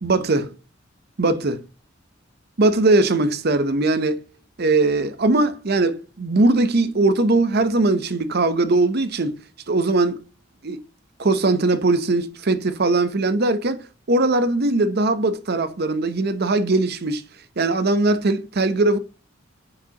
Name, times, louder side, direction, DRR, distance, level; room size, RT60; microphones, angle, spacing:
voice 1, 0.0-0.5 1.2-1.6 2.6-4.2 4.6-9.4 9.7-10.2 10.6-10.8 11.2-17.2 17.6-19.0, right 2 dB, 50° right, 0.7 m, -20 dB
9.5 x 4.9 x 2.9 m
head